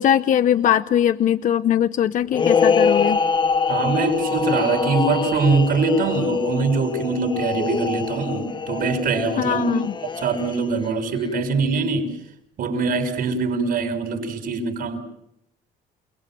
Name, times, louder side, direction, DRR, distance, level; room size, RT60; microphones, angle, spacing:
voice 1, 0.0-3.2 9.4-9.9, left 10 dB, 50° left, 11 dB, 0.8 m, -20 dB
sound 1, 2.3-10.9, left 5 dB, 25° left, 1.0 m, -24 dB
voice 2, 3.7-9.7 10.0-12.1 12.6-15.0, right 4 dB, 60° right, 6 dB, 6.2 m, -23 dB
29.5 x 19.0 x 7.7 m, 0.81 s
cardioid pair, 110°, 17 cm